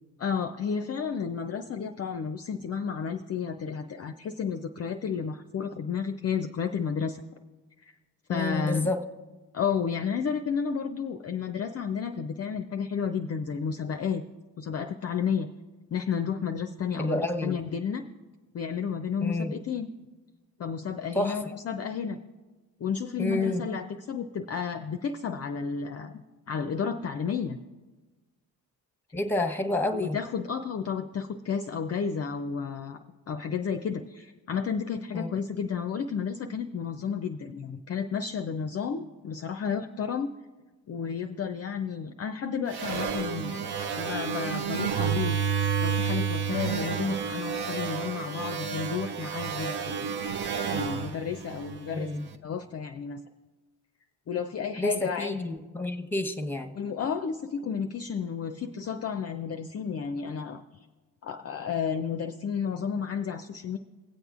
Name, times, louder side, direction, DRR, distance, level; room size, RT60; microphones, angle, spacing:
voice 1, 0.2-7.2 7.8-7.9 8.3-8.9 9.5-14.2 14.6-15.5 15.9-18.1 18.5-19.9 20.6-22.2 22.8-27.6 29.9-33.0 33.3-40.3 40.9-43.6 44.0-45.4 45.8-50.4 50.7-52.1 52.4-53.2 54.3-55.4 56.7-60.6 61.2-63.8, left 6 dB, 35° left, 7 dB, 0.5 m, -32 dB
voice 2, 8.3-9.0 17.0-17.5 19.2-19.5 21.1-21.4 23.2-23.7 29.1-30.2 35.1-35.3 51.9-52.3 54.8-56.7, left 2 dB, 5° left, 5 dB, 1.0 m, -29 dB
sound 1, 42.7-52.2, right 7 dB, 60° right, 0.7 m, -30 dB
21.0 x 7.8 x 2.4 m, 1.2 s
supercardioid pair, 45°, 44 cm